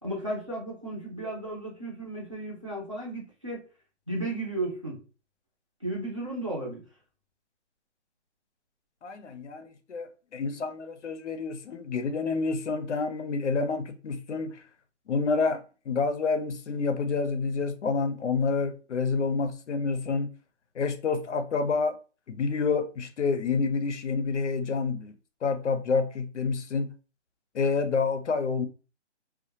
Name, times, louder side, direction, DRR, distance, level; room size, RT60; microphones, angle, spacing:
voice 1, 0.0-3.6 4.1-5.0 5.8-6.8, right 1 dB, 30° right, 0.5 m, -34 dB
voice 2, 9.0-14.6 15.1-15.6 15.9-20.3 20.7-22.0 22.3-25.1 25.4-26.9 27.5-28.7, left 4 dB, 90° left, 0.6 m, -28 dB
2.2 x 2.1 x 2.8 m
hypercardioid pair, 180°, 34 cm